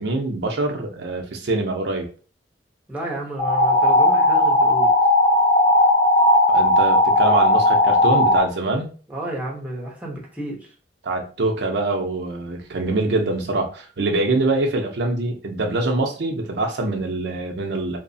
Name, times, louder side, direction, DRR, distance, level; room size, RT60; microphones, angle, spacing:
voice 1, 0.0-2.1 6.5-8.9 11.0-18.0, right 2 dB, 70° right, 3 dB, 0.5 m, -24 dB
voice 2, 2.9-4.9 9.1-10.7, right 1 dB, 10° right, -2 dB, 0.6 m, -31 dB
sound 1, 3.4-8.4, left 1 dB, 25° left, 0.9 m, -16 dB
2.9 x 2.0 x 2.6 m, 0.38 s
head